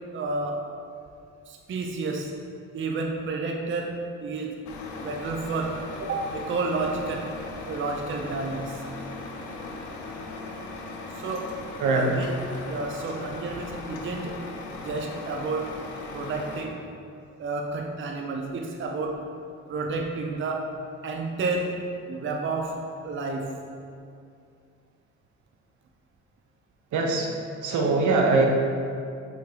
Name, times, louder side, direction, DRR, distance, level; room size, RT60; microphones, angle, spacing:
voice 1, 0.1-0.7 1.5-2.4 2.7-4.6 5.0-7.4 7.7-8.8 11.1-11.6 11.9-14.4 14.8-15.8 16.1-16.8 17.4-19.3 19.7-23.7, right 3 dB, 40° right, 1 dB, 0.6 m, -31 dB
Truck, 4.6-16.6, left 3 dB, 85° left, 0.8 m, -38 dB
voice 2, 26.9-28.5, right 3 dB, 75° right, 1 dB, 0.9 m, -22 dB
5.9 x 4.2 x 3.9 m, 2.4 s
cardioid pair, 90°, 30 cm